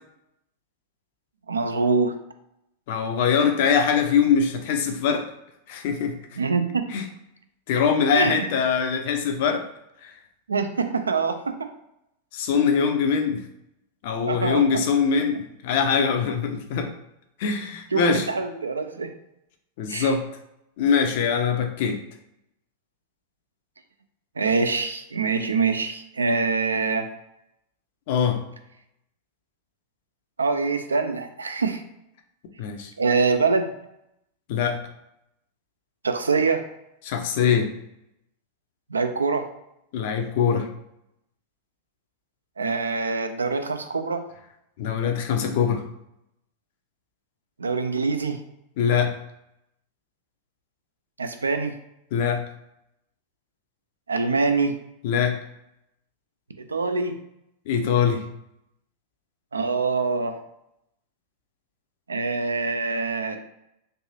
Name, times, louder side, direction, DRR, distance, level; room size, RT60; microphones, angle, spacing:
voice 1, 1.5-2.1 6.4-7.0 8.1-8.5 10.5-11.6 14.3-14.8 17.9-19.1 19.9-20.1 24.4-27.1 30.4-31.8 33.0-33.7 36.0-36.6 38.9-39.5 42.6-44.2 47.6-48.4 51.2-51.7 54.1-54.8 56.6-57.1 59.5-60.4 62.1-63.4, right 4 dB, 75° right, 8 dB, 0.3 m, -24 dB
voice 2, 2.9-5.2 5.7-6.1 6.9-7.0 7.7-9.6 10.0-10.1 12.3-13.4 14.0-16.9 17.4-18.3 19.8-20.2 20.8-22.0 28.1-28.4 32.6-32.9 34.5-34.8 37.0-37.7 39.9-40.7 44.8-45.8 48.8-49.1 52.1-52.4 55.0-55.4 57.7-58.2, left 6 dB, 50° left, 5 dB, 0.5 m, -22 dB
3.3 x 2.5 x 2.7 m, 0.83 s
figure-of-eight pair, 90°, 0 cm